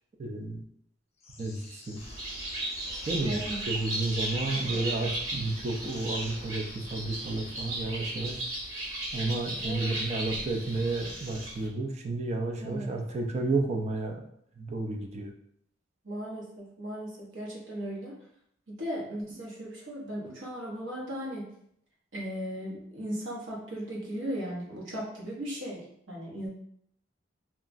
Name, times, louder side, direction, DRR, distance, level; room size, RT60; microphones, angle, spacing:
voice 1, 0.2-0.6 1.4-2.0 3.1-8.4 9.1-14.2 14.6-15.3, right 2 dB, 35° right, 2 dB, 0.4 m, -32 dB
sound 1, 1.2-11.4, left 3 dB, 35° left, 0.4 m, -50 dB
Bird, 2.0-11.7, right 2 dB, 85° right, 1.3 m, -36 dB
voice 2, 3.2-3.6 4.5-4.8 9.6-10.0 12.6-12.9 16.0-18.2 18.7-21.5 22.1-26.5, equal, 70° right, -4 dB, 0.9 m, -37 dB
2.8 x 2.3 x 2.5 m, 0.70 s
head